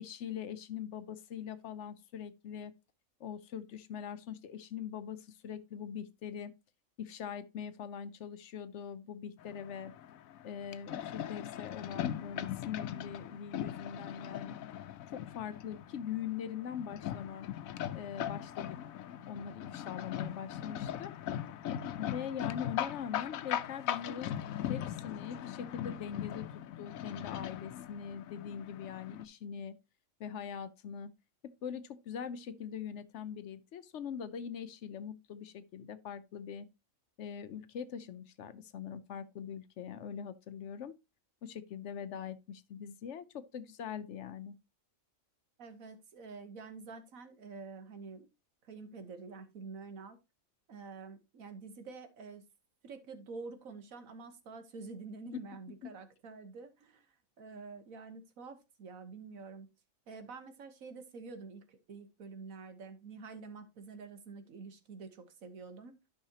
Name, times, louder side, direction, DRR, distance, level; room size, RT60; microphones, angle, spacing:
voice 1, 0.0-2.7 3.2-6.5 7.0-9.9 10.4-14.6 15.1-17.5 17.9-18.8 19.3-21.1 22.0-24.3 24.7-26.5 26.8-29.8 30.2-31.1 31.4-36.7 37.2-41.0 41.4-44.6 55.3-55.4 55.8-55.9, left 8 dB, 65° left, 0.9 m, -42 dB
sound 1, 9.4-29.2, left 11 dB, 90° left, 1.0 m, -40 dB
voice 2, 45.6-48.3 48.6-50.2 50.7-52.4 52.8-57.1 57.4-59.7 60.1-66.0, right 4 dB, 80° right, 1.5 m, -48 dB
12.0 x 5.6 x 2.8 m
omnidirectional pair, 1.4 m